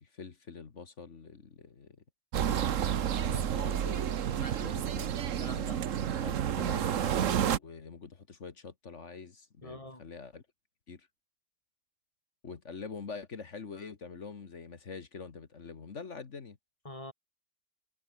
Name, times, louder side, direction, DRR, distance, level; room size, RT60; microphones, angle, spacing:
voice 1, 0.0-2.0 3.0-5.1 6.0-10.4 10.9-11.1 12.4-16.6, left 5 dB, 55° left, 1.9 m, -45 dB
sound 1, 2.3-7.6, right 9 dB, 65° right, 1.3 m, -30 dB
voice 2, 4.4-5.8 9.6-10.0 16.9-17.1, left 1 dB, 25° left, 3.5 m, -46 dB
omnidirectional pair, 1.5 m